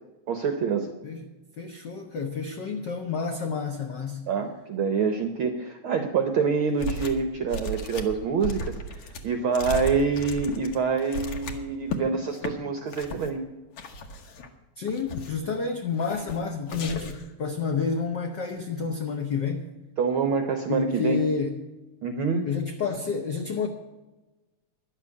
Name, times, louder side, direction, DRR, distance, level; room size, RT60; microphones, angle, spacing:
voice 1, 0.3-0.9 4.3-13.4 20.0-21.2 22.0-22.5, right 5 dB, 75° right, 7 dB, 1.2 m, -26 dB
voice 2, 1.6-4.3 14.8-19.7 20.7-21.6 22.4-23.7, left 5 dB, 80° left, 4 dB, 0.9 m, -29 dB
sound 1, 6.8-7.2 7.5-12.0 12.4-12.5 12.9-13.3 13.8-14.5 14.9-15.5 16.0-16.4 16.7-17.3, left 1 dB, 60° left, 1.9 m, -35 dB
11.5 x 7.5 x 9.5 m, 1.1 s
omnidirectional pair, 3.4 m